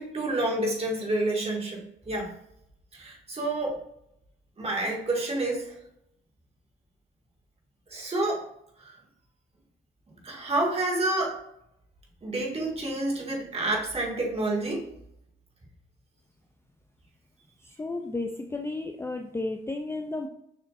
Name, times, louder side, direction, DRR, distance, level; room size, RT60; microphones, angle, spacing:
voice 1, 0.0-2.3 2.9-3.8 4.6-5.7 7.9-8.5 8.8-9.0 10.2-11.4 12.2-14.9, right 2 dB, 30° right, -2 dB, 2.1 m, -29 dB
voice 2, 17.8-20.3, left 2 dB, 10° left, 4 dB, 0.5 m, -33 dB
6.8 x 5.8 x 2.6 m, 0.77 s
cardioid pair, 90°, 20 cm